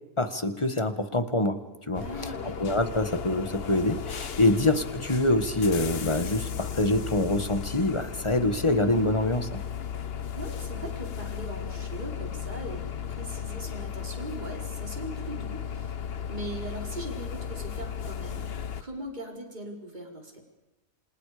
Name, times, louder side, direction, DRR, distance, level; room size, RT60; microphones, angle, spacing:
voice 1, 0.2-1.6 1.9-9.6, left 2 dB, 20° left, 9 dB, 1.7 m, -25 dB
sound 1, 1.9-18.8, left 8 dB, 50° left, 1.1 m, -35 dB
voice 2, 2.0-2.6 10.3-15.9 16.3-18.5 18.8-20.4, right 1 dB, 30° right, 1 dB, 4.9 m, -40 dB
28.5 x 27.0 x 5.2 m, 1.0 s
omnidirectional pair, 1.4 m